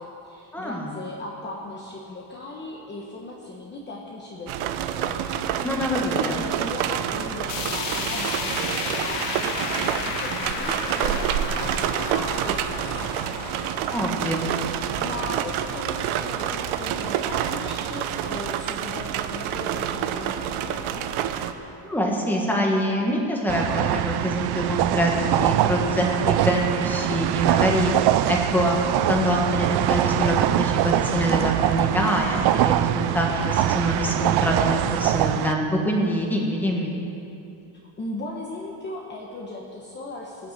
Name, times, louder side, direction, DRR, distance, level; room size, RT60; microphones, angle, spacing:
voice 1, 0.0-5.2 6.1-13.3 15.0-21.1 38.0-40.5, left 2 dB, 20° left, -2 dB, 1.1 m, -37 dB
voice 2, 0.5-0.9 5.6-6.4 13.9-14.5 21.8-36.9, equal, 5° left, -1 dB, 1.6 m, -25 dB
sound 1, 4.5-21.5, right 10 dB, 80° right, 0.9 m, -28 dB
sound 2, 7.5-17.7 18.1-18.2 18.5-18.6 19.5-19.6, left 5 dB, 60° left, 1.4 m, -34 dB
sound 3, 23.5-35.5, right 13 dB, 55° right, 0.5 m, -23 dB
19.5 x 6.8 x 7.8 m, 2.7 s
cardioid pair, 175°, 48 cm